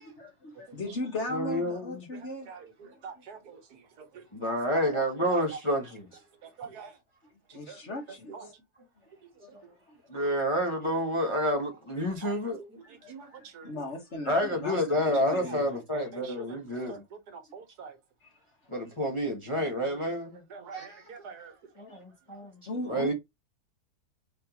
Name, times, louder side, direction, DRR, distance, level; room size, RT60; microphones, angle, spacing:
voice 1, 0.0-2.5 2.8-3.2 7.3-8.5 9.4-9.9 12.8-14.8 15.0-15.7 18.2-18.4 21.9-22.0 22.7-23.1, left 2 dB, 50° left, 1.5 m, -38 dB
voice 2, 1.3-2.0 4.3-6.1 10.1-12.6 14.3-17.0 18.7-20.4 20.7-21.1 21.8-22.6 22.9-23.1, equal, 25° left, 0.8 m, -29 dB
voice 3, 3.0-5.0 5.3-5.4 6.4-6.9 7.5-7.8 8.3-8.4 12.2-13.8 15.4-15.6 16.1-16.6 16.9-17.0 17.3-18.0 19.8-20.0 20.5-21.5, right 5 dB, 80° right, 1.5 m, -45 dB
4.1 x 3.4 x 2.8 m
omnidirectional pair, 1.7 m